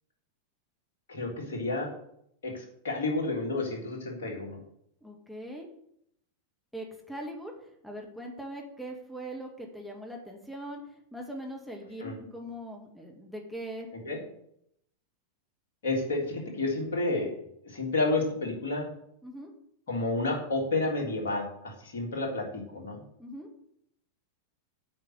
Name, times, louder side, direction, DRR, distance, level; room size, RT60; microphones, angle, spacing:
voice 1, 1.1-1.9 2.4-4.6 12.0-12.2 13.9-14.2 15.8-18.9 19.9-23.0, left 2 dB, 60° left, -1 dB, 3.5 m, -31 dB
voice 2, 5.0-5.7 6.7-7.5 7.8-10.8 11.1-12.0 12.3-13.9 19.2-19.5 23.2-23.5, right 1 dB, ahead, 0 dB, 1.9 m, -41 dB
8.7 x 6.0 x 8.0 m, 0.73 s
figure-of-eight pair, 90°, 0 cm